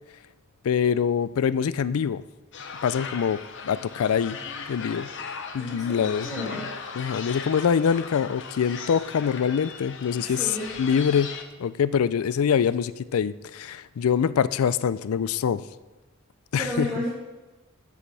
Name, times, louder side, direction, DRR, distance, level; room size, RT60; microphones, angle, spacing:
voice 1, 0.6-2.2 2.8-4.4 4.7-5.1 5.5-6.6 7.0-11.3 11.6-15.6 16.5-16.9, left 7 dB, 75° left, 16 dB, 0.4 m, -24 dB
sound 1, 2.5-11.4, left 5 dB, 60° left, 0.8 m, -38 dB
voice 2, 5.6-6.7 10.2-10.8 16.6-17.1, equal, ahead, -10 dB, 2.4 m, -32 dB
12.5 x 8.4 x 3.3 m, 1.2 s
head